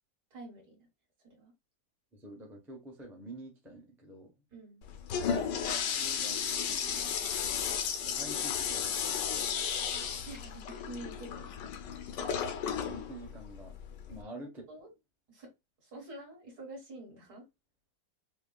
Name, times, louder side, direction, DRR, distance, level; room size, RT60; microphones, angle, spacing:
voice 1, 0.3-0.8 1.2-1.5 4.5-4.8 10.3-11.6 14.2-14.9 15.3-15.5 15.8-17.5, right 2 dB, 55° right, 2.2 m, -48 dB
voice 2, 2.1-4.3 5.9-7.2 8.1-9.2 9.9-10.1 12.8-13.7 14.1-14.7, right 1 dB, ahead, 0.7 m, -48 dB
Toilet flush, 4.8-14.2, left 7 dB, 70° left, 1.3 m, -34 dB
5.8 x 2.3 x 2.2 m
omnidirectional pair, 2.0 m